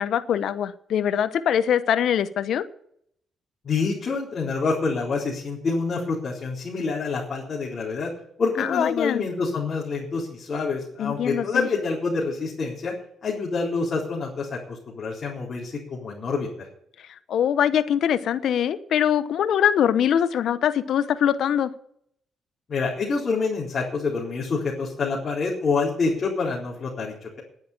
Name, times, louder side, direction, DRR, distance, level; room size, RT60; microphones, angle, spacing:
voice 1, 0.0-2.6 8.6-9.3 11.0-11.7 17.3-21.7, left 9 dB, 70° left, 13 dB, 0.9 m, -23 dB
voice 2, 3.6-8.1 8.4-12.9 13.2-16.7 22.7-27.4, left 4 dB, 45° left, -5 dB, 4.0 m, -27 dB
11.0 x 9.3 x 8.6 m, 0.69 s
cardioid pair, 90°, 0 cm